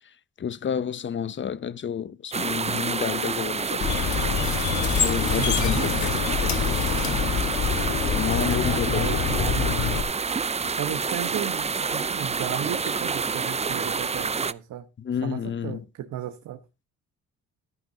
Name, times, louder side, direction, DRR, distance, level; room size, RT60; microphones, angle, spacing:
voice 1, 0.4-4.1 5.0-6.8 8.1-9.4 15.0-15.8, left 8 dB, 40° left, 0.8 m, -30 dB
sound 1, 2.3-14.5, right 5 dB, 20° right, 0.6 m, -28 dB
sound 2, 3.8-10.0, left 7 dB, 70° left, 1.7 m, -26 dB
voice 2, 5.4-5.9 8.1-10.1 10.4-14.9 15.2-16.6, right 11 dB, 75° right, 1.3 m, -35 dB
14.0 x 10.0 x 2.8 m
cardioid pair, 90°, 30 cm